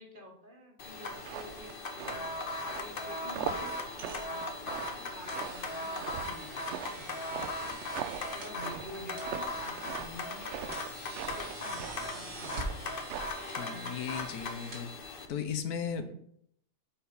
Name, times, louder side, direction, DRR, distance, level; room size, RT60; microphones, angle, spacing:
voice 1, 0.0-2.3 2.8-7.8 8.3-13.0 16.0-16.1, equal, 35° right, 1 dB, 1.5 m, -49 dB
sound 1, 0.8-15.3, left 2 dB, 45° left, 0.9 m, -39 dB
sound 2, 1.1-13.5, right 8 dB, 65° right, 0.7 m, -42 dB
sound 3, 2.3-15.5, right 2 dB, 80° right, 2.2 m, -47 dB
voice 2, 13.6-14.9 15.3-16.1, left 7 dB, 75° left, 9 dB, 1.3 m, -36 dB
7.4 x 4.5 x 5.2 m, 0.68 s
omnidirectional pair, 1.7 m